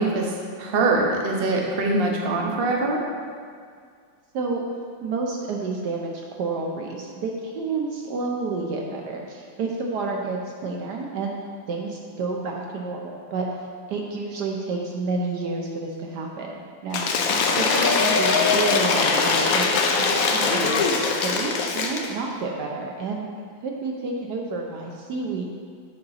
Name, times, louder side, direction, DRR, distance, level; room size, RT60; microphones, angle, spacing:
voice 1, 0.0-3.0, right 2 dB, 50° right, -1 dB, 0.7 m, -23 dB
voice 2, 5.0-11.4 11.7-13.5 13.9-17.1 17.6-20.8 21.2-23.3 23.6-25.4, right 3 dB, 70° right, 0 dB, 1.1 m, -30 dB
Cheering / Applause / Crowd, 16.9-22.1, left 4 dB, 70° left, 0.8 m, -21 dB
6.7 x 5.9 x 4.0 m, 2.1 s
omnidirectional pair, 2.1 m